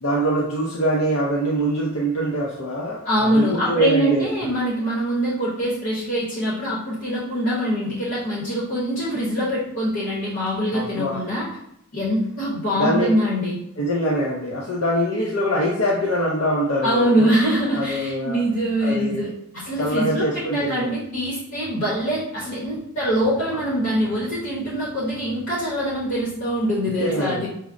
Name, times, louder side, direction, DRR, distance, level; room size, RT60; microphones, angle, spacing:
voice 1, 0.0-4.3 10.7-11.2 12.8-13.1 13.8-17.3 17.7-18.4 18.8-19.3 19.8-20.9 23.2-23.3 26.9-27.5, right 1 dB, 70° left, -3 dB, 0.5 m, -23 dB
voice 2, 3.0-11.5 11.9-13.6 16.8-27.5, equal, 55° left, -6 dB, 0.9 m, -23 dB
5.8 x 2.0 x 2.5 m, 0.74 s
head